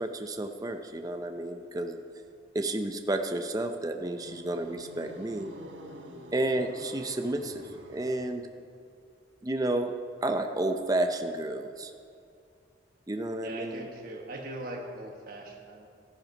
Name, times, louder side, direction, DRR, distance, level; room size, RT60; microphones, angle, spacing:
voice 1, 0.0-2.0 2.5-5.5 6.3-7.6 7.9-8.5 9.4-9.9 10.2-11.9 13.1-13.9, right 1 dB, 20° right, 6 dB, 0.5 m, -31 dB
sound 1, 3.9-8.6, right 1 dB, 80° right, 1.3 m, -47 dB
voice 2, 13.4-15.9, right 1 dB, 55° right, 0 dB, 1.2 m, -40 dB
14.0 x 10.0 x 5.3 m, 2.4 s
head